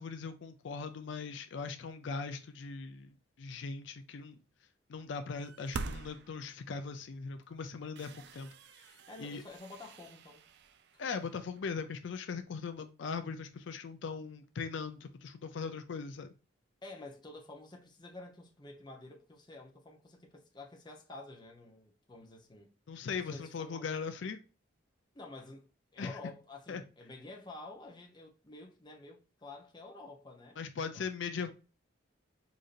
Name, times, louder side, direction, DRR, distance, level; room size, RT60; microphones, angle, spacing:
voice 1, 0.0-4.4 4.9-8.5 8.8-9.4 11.0-16.3 22.9-24.4 26.0-26.2 26.7-26.8 30.6-31.5, left 5 dB, 70° left, 0.4 m, -40 dB
sound 1, 5.4-6.8 7.4-7.5 7.9-11.8, right 4 dB, 55° right, 0.3 m, -46 dB
voice 2, 9.1-10.4 14.2-14.5 16.8-22.7 23.2-23.8 25.1-30.6 30.9-31.1 31.4-31.5, left 2 dB, 20° left, 0.7 m, -50 dB
5.0 x 2.7 x 2.4 m
head